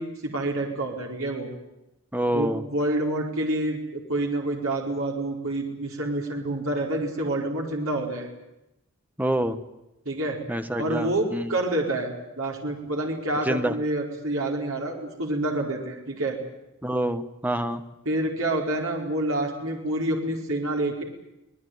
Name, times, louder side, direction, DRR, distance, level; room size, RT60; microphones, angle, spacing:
voice 1, 0.0-1.5 2.3-8.3 10.0-10.4 10.8-16.4 18.0-21.0, right 1 dB, 70° right, 1 dB, 4.7 m, -28 dB
voice 2, 2.1-2.6 9.2-9.6 10.5-11.5 13.5-13.7 16.8-17.8, right 1 dB, 10° right, 9 dB, 1.3 m, -26 dB
25.0 x 20.0 x 9.4 m, 0.93 s
head